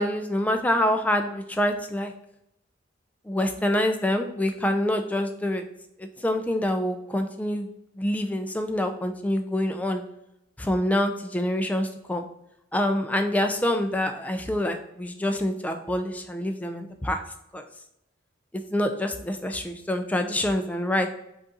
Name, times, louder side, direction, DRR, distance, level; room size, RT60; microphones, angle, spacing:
voice 1, 0.0-2.1 3.3-5.6 6.0-7.7 8.0-10.0 10.6-12.3 12.7-17.2 17.5-17.6 18.7-21.1, left 1 dB, 10° left, 5 dB, 0.3 m, -26 dB
5.1 x 2.5 x 3.9 m, 0.82 s
head